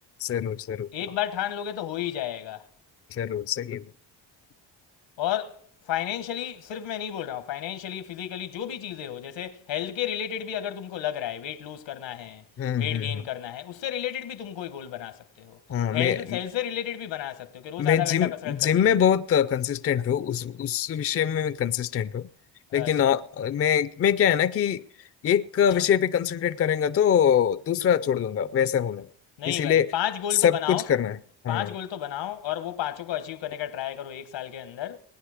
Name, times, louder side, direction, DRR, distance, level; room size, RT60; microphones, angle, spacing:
voice 1, 0.2-0.9 3.1-3.9 12.6-13.2 15.7-16.4 17.8-22.3 22.7-24.9 25.2-29.1 29.5-29.9 30.3-31.2 31.4-31.7, left 9 dB, 35° left, 0.4 m, -24 dB
voice 2, 0.9-2.6 5.2-5.6 5.9-12.4 12.8-15.6 15.9-18.8 22.7-23.1 29.4-30.8 31.5-35.0, left 11 dB, 80° left, 1.3 m, -32 dB
19.0 x 10.0 x 4.9 m
cardioid pair, 115°, 44 cm